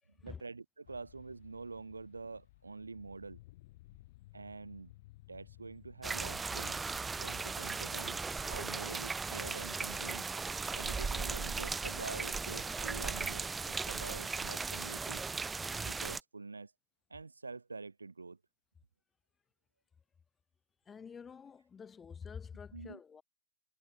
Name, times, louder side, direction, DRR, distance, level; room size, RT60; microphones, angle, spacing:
voice 1, 0.2-3.4 4.3-4.9 5.3-6.8 7.2-10.2 10.8-15.2 15.8-16.7 17.1-18.4 22.7-23.0, right 4 dB, 80° right, 0.9 m, -46 dB
sound 1, 0.8-8.9, left 19 dB, 50° left, 1.1 m, -58 dB
sound 2, 6.0-16.2, right 4 dB, 15° right, 0.6 m, -37 dB
voice 2, 20.9-23.2, left 6 dB, 20° left, 3.8 m, -48 dB
figure-of-eight pair, 90°, 0 cm